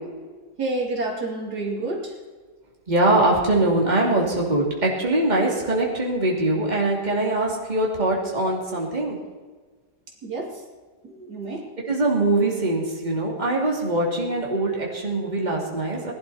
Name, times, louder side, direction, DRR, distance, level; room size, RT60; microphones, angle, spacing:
voice 1, 0.6-2.2 10.2-10.6 11.0-11.7, right 2 dB, 70° right, -1 dB, 3.1 m, -29 dB
voice 2, 2.9-9.2 11.9-16.1, right 2 dB, 25° right, -2 dB, 2.9 m, -22 dB
20.0 x 11.5 x 4.3 m, 1.4 s
omnidirectional pair, 1.7 m